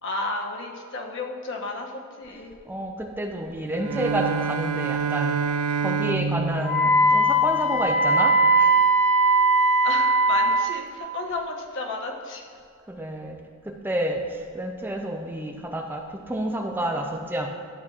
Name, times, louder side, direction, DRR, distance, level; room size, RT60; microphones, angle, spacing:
voice 1, 0.0-1.9 2.2-2.5 9.8-12.4, left 2 dB, 60° left, 1 dB, 1.0 m, -32 dB
voice 2, 2.7-5.4 5.8-8.7 12.9-13.4 13.6-17.5, right 1 dB, 10° right, 2 dB, 0.5 m, -29 dB
Bowed string instrument, 3.7-7.9, right 5 dB, 90° right, 0.3 m, -28 dB
Wind instrument woodwind instrument, 6.6-10.7, right 1 dB, 25° left, 1.1 m, -19 dB
12.0 x 7.5 x 2.4 m, 2.3 s
head